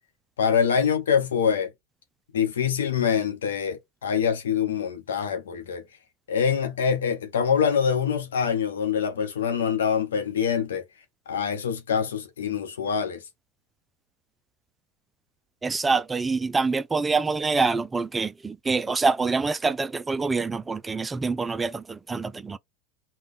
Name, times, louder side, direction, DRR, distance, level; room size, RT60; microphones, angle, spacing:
voice 1, 0.4-1.7 2.3-5.8 6.3-10.8 11.3-13.2, left 7 dB, 90° left, 0.8 m, -25 dB
voice 2, 15.6-22.6, right 4 dB, 15° right, 0.3 m, -26 dB
3.8 x 2.2 x 3.6 m
hypercardioid pair, 100°, 0 cm